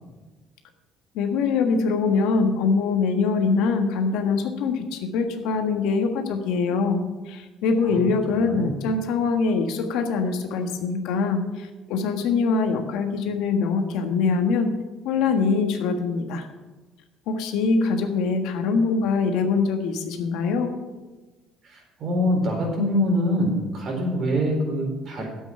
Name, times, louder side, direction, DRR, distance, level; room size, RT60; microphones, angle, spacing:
voice 1, 1.1-14.7 15.0-16.5 17.3-20.7, left 4 dB, 80° left, 5 dB, 1.5 m, -23 dB
voice 2, 7.8-8.7 21.6-25.3, equal, 55° right, 0 dB, 4.4 m, -25 dB
9.2 x 8.1 x 7.6 m, 1.2 s
cardioid pair, 105°, 0 cm